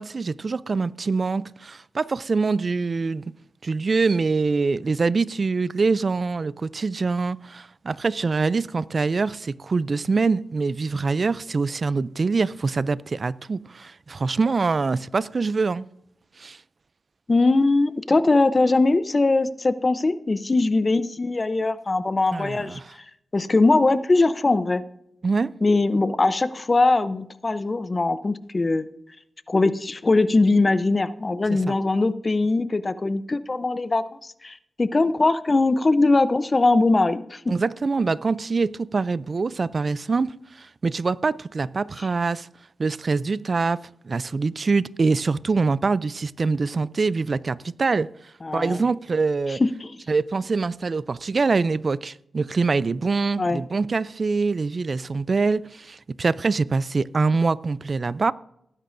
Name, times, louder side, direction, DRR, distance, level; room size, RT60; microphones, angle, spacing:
voice 1, 0.0-3.2 3.6-15.9 16.4-16.6 22.3-22.9 25.2-25.5 31.7-31.8 37.5-42.5 42.8-48.1 48.5-49.6 50.1-58.3, right 4 dB, 50° right, 0.4 m, -24 dB
voice 2, 17.3-22.8 23.3-24.8 25.6-28.8 29.5-37.4 48.4-48.8 49.5-49.9 53.4-53.6, left 3 dB, 35° left, 0.6 m, -21 dB
18.0 x 10.0 x 2.6 m
cardioid pair, 65°, 0 cm